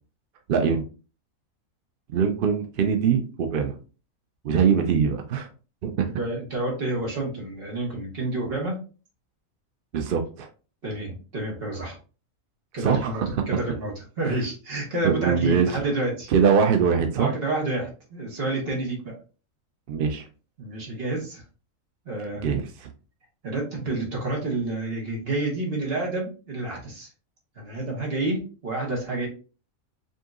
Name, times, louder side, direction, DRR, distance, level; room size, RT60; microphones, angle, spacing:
voice 1, 0.5-0.8 2.1-3.8 4.4-5.5 5.8-6.1 9.9-10.5 12.8-13.4 14.2-14.4 15.0-15.8 16.3-17.3 19.9-20.2 22.4-22.9, right 6 dB, 60° right, 5 dB, 0.5 m, -22 dB
voice 2, 6.1-8.8 10.8-12.0 12.7-13.2 13.5-16.3 17.2-19.1 20.6-21.4 22.0-22.5 23.4-27.1 27.5-29.3, right 2 dB, 45° right, -2 dB, 1.6 m, -29 dB
5.2 x 2.8 x 2.5 m, 0.35 s
omnidirectional pair, 1.4 m